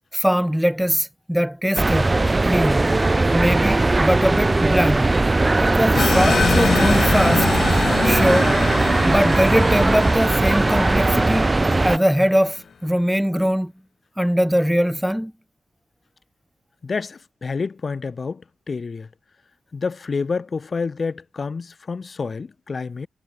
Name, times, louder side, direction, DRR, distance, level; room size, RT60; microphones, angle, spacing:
voice 1, 0.1-2.2 2.4-2.8 3.3-5.1 5.6-7.5 8.0-8.5 9.1-13.7 14.2-15.3, equal, ahead, 1.6 m, -21 dB
sound 1, 1.8-12.0, right 2 dB, 20° right, 0.8 m, -19 dB
sound 2, 6.0-12.2, left 6 dB, 55° left, 1.8 m, -25 dB
voice 2, 16.8-18.4 18.7-19.1 19.7-23.1, left 4 dB, 40° left, 6.7 m, -28 dB
wide cardioid pair, 110°, 0 cm